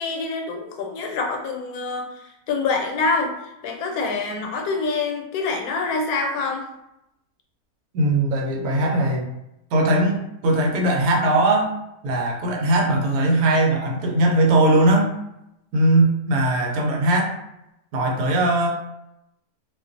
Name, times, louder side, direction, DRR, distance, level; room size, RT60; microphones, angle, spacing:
voice 1, 0.0-6.7, left 3 dB, 80° left, 3 dB, 1.1 m, -26 dB
voice 2, 7.9-9.3 9.7-11.8 12.0-15.1 15.7-17.3 17.9-18.7, right 1 dB, 80° right, 0 dB, 1.1 m, -19 dB
2.4 x 2.3 x 2.5 m, 0.84 s
omnidirectional pair, 1.6 m